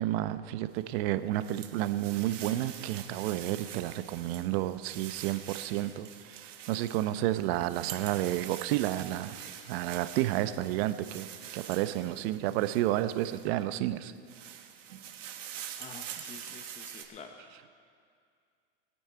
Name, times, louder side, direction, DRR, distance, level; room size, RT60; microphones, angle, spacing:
voice 1, 0.0-9.4 9.7-11.3 11.5-14.1, right 14 dB, 55° right, 12 dB, 0.8 m, -31 dB
sound 1, 0.8-13.6 14.1-17.0, right 9 dB, 85° right, 1.6 m, -45 dB
voice 2, 15.8-17.3, left 5 dB, 20° left, 5 dB, 0.8 m, -48 dB
23.5 x 8.9 x 4.6 m, 2.2 s
hypercardioid pair, 120°, 37 cm